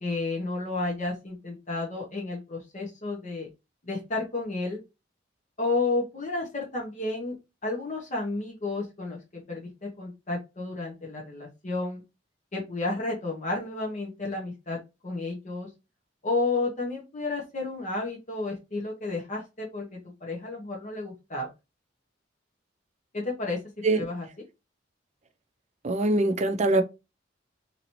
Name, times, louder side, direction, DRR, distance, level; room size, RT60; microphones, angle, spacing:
voice 1, 0.0-3.5 3.8-4.8 5.6-7.4 7.6-12.0 12.5-15.7 16.2-21.5 23.1-23.6 23.9-24.3, left 3 dB, 40° left, 0.9 m, -31 dB
voice 2, 25.8-26.8, right 2 dB, 40° right, 0.5 m, -23 dB
2.9 x 2.7 x 2.9 m
head